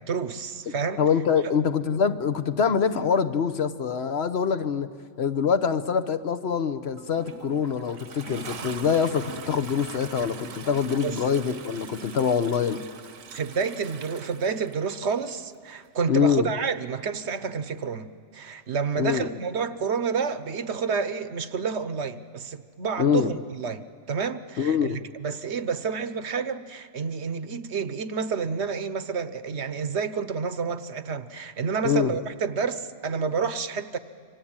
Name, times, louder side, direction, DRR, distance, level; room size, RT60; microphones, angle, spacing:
voice 1, 0.0-1.0 1.4-1.5 11.0-11.2 13.3-34.0, right 5 dB, 55° right, 12 dB, 1.1 m, -29 dB
voice 2, 1.0-4.9 5.2-12.8 16.1-16.5 19.0-19.3 23.0-23.3 24.6-25.0 31.8-32.1, left 7 dB, 55° left, 11 dB, 1.1 m, -24 dB
Toilet flush, 7.0-15.4 16.4-16.5, right 5 dB, 75° right, 1.5 m, -42 dB
26.5 x 25.0 x 8.8 m, 2.2 s
omnidirectional pair, 1.4 m